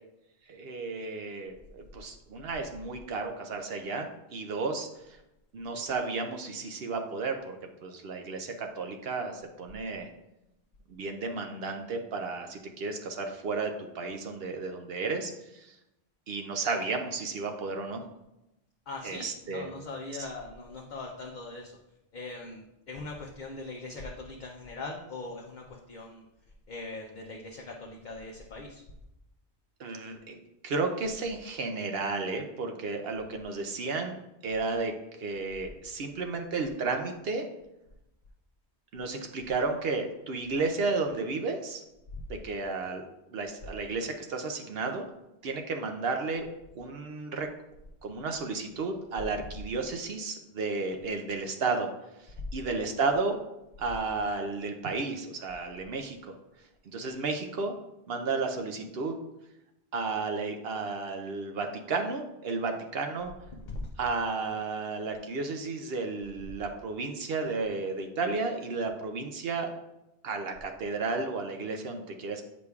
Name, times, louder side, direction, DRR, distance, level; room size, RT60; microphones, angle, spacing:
voice 1, 0.5-4.9 5.5-7.6 7.8-10.1 10.9-15.7 16.3-18.0 19.0-19.7 29.8-30.4 30.6-34.2 34.4-34.9 35.2-37.5 38.9-41.8 42.3-43.0 43.3-45.1 45.4-46.5 46.8-47.5 48.0-51.9 52.5-53.4 53.8-56.3 56.9-57.7 58.1-59.1 59.9-63.3 64.0-69.7 70.2-72.4, right 3 dB, 65° right, 5 dB, 0.8 m, -33 dB
voice 2, 18.9-21.8 22.1-26.3 26.7-28.8 42.1-42.2 63.6-63.9, left 3 dB, 50° left, 0 dB, 0.7 m, -41 dB
8.1 x 5.1 x 2.3 m, 0.90 s
omnidirectional pair, 1.1 m